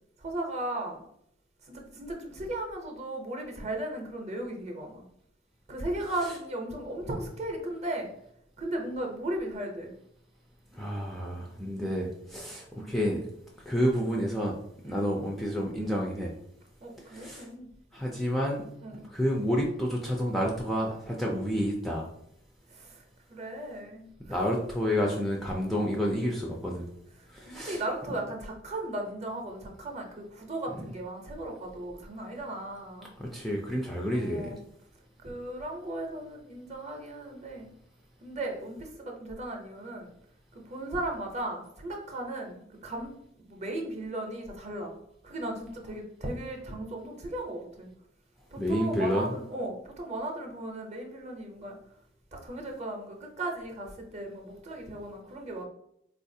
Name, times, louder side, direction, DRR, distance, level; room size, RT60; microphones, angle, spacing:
voice 1, 0.2-1.0 1.7-5.0 5.7-8.1 8.6-9.9 11.8-11.9 12.7-12.9 14.8-15.1 16.8-17.7 18.8-19.1 22.7-23.0 23.3-24.4 25.0-25.2 27.5-33.1 34.1-34.6 35.2-37.7 38.2-40.1 40.5-44.9 45.2-47.9 48.5-51.8 52.3-55.6, right 1 dB, 35° right, 2 dB, 0.6 m, -36 dB
voice 2, 10.7-13.2 13.7-14.6 14.8-16.3 17.1-17.5 17.9-18.7 19.1-22.1 24.3-26.9 27.3-27.8 33.2-34.5 48.6-49.3, equal, ahead, -2 dB, 0.3 m, -29 dB
3.9 x 2.4 x 2.6 m, 0.73 s
head